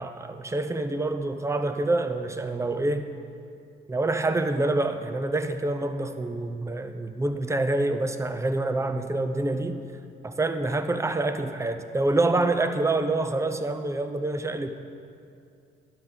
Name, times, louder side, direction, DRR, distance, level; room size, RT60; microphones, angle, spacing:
voice 1, 0.0-3.1 3.9-9.8 10.2-14.7, right 2 dB, 15° right, 9 dB, 0.7 m, -26 dB
12.5 x 11.0 x 4.0 m, 2.4 s
cardioid pair, 90°, 20 cm